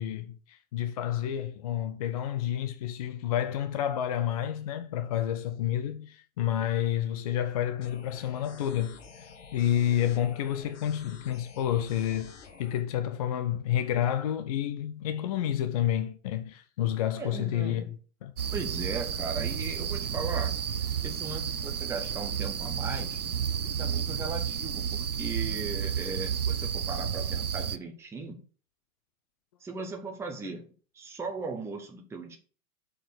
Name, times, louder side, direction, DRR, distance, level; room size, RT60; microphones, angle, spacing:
voice 1, 0.0-9.0 9.5-18.3, left 11 dB, 30° left, 0.4 m, -30 dB
sound 1, 7.8-12.8, left 5 dB, 55° left, 1.6 m, -50 dB
voice 2, 17.2-17.9 18.5-20.6 21.0-23.2 23.6-28.4 29.6-32.4, right 4 dB, 5° right, 0.9 m, -38 dB
sound 2, 18.4-27.8, right 7 dB, 80° right, 0.8 m, -31 dB
6.5 x 4.6 x 6.2 m
figure-of-eight pair, 105°, 43 cm